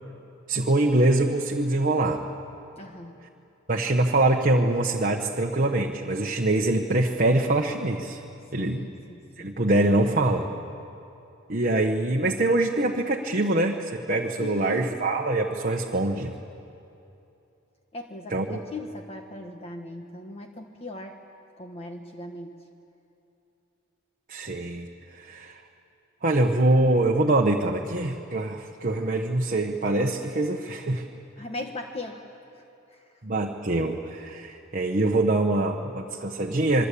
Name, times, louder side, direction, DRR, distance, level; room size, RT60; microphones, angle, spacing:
voice 1, 0.5-2.2 3.7-8.2 8.5-8.9 9.4-10.5 11.5-16.3 18.3-18.6 24.3-25.6 26.2-31.1 33.2-36.9, right 2 dB, 40° right, 1 dB, 1.1 m, -24 dB
voice 2, 2.8-3.2 8.5-9.5 14.4-14.9 17.9-21.2 21.6-22.6 31.4-32.2 32.9-33.0, left 2 dB, 30° left, 3 dB, 1.3 m, -38 dB
27.0 x 22.0 x 8.5 m, 2.8 s
head